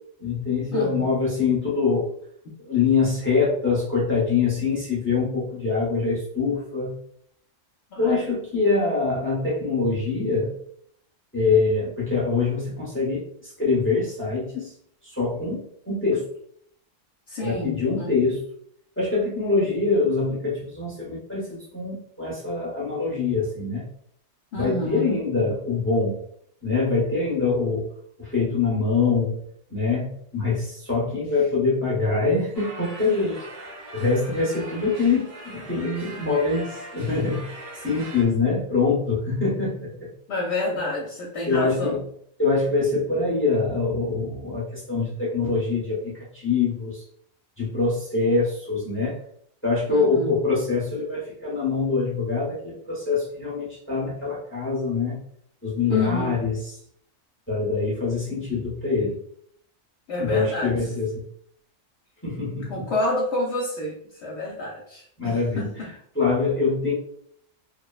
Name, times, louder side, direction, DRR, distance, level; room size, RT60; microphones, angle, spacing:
voice 1, 0.2-2.1 2.6-7.0 8.0-10.5 11.3-14.7 15.0-16.2 17.4-18.4 19.0-23.9 24.6-26.2 26.6-27.9 28.2-29.4 29.7-33.4 33.9-37.5 37.8-40.1 41.5-42.0 42.4-47.0 47.6-49.2 49.6-55.2 55.6-56.5 57.5-59.2 60.2-61.1 62.2-62.8 65.2-65.7 66.2-66.9, left 4 dB, 15° left, -5 dB, 0.6 m, -24 dB
voice 2, 0.7-1.2 7.9-8.2 17.3-18.2 24.5-25.2 40.3-42.0 49.9-50.4 55.9-56.5 60.1-60.9 62.7-65.9, left 2 dB, 65° left, -2 dB, 0.8 m, -29 dB
sound 1, 32.5-38.2, right 2 dB, 55° right, 0.9 m, -41 dB
2.8 x 2.0 x 2.3 m, 0.64 s
omnidirectional pair, 1.3 m